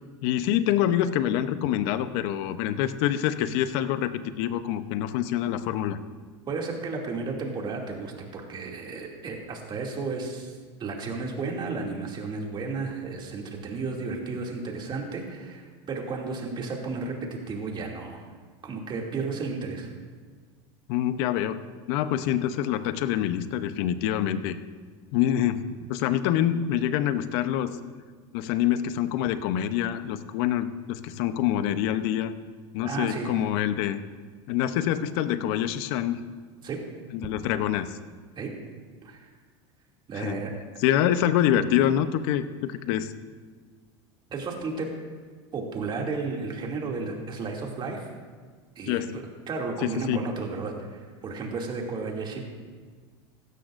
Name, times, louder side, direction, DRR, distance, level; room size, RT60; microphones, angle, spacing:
voice 1, 0.2-6.0 20.9-21.6 21.9-24.6 25.1-25.6 25.9-27.8 28.3-32.3 32.7-34.0 34.5-36.2 37.1-38.0 40.1-40.4 40.8-43.1 48.9-49.1 49.8-50.2, left 11 dB, 65° left, 12 dB, 0.8 m, -26 dB
voice 2, 6.5-18.2 18.6-19.9 32.8-33.4 36.6-36.8 38.4-38.5 39.0-39.3 40.1-40.5 44.3-44.9 45.5-48.1 48.8-52.4, right 4 dB, 35° right, 0 dB, 2.5 m, -33 dB
16.5 x 13.0 x 2.6 m, 1.5 s
supercardioid pair, 105°, 14 cm